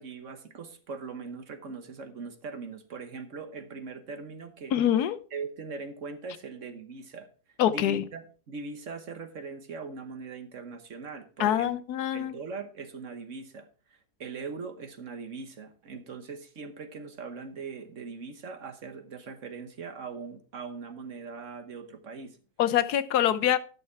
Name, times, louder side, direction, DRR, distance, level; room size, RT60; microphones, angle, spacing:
voice 1, 0.0-4.7 5.3-7.3 7.7-11.7 12.1-22.4, right 4 dB, 55° right, 8 dB, 1.4 m, -41 dB
voice 2, 4.7-5.2 7.6-8.0 11.4-12.3 22.6-23.6, left 11 dB, 85° left, 14 dB, 1.3 m, -25 dB
11.5 x 6.7 x 4.6 m, 0.38 s
omnidirectional pair, 1.6 m